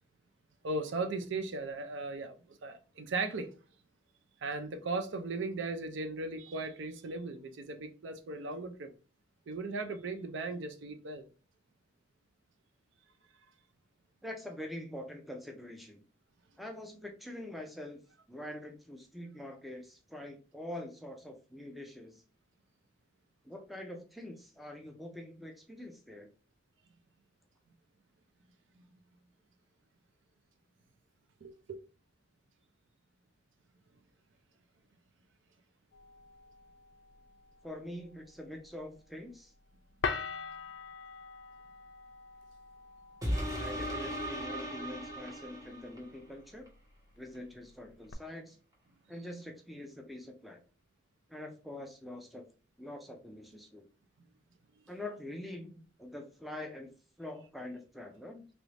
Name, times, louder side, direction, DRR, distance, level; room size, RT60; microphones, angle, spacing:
voice 1, 0.6-3.5 4.4-8.9 9.5-11.3 28.8-28.9 31.4-31.8, right 3 dB, 65° right, 0.4 m, -37 dB
voice 2, 14.2-16.0 16.6-18.0 18.3-22.2 23.4-26.3 37.6-39.5 43.6-46.7 47.2-48.6 49.1-50.6 51.3-52.5 52.8-53.9 54.9-56.9 57.2-58.5, left 1 dB, ahead, 0.4 m, -45 dB
sound 1, 35.9-48.1, left 5 dB, 60° left, 0.4 m, -45 dB
sound 2, 43.2-46.1 46.7-46.8, equal, 20° right, 0.9 m, -36 dB
3.0 x 2.5 x 3.2 m
head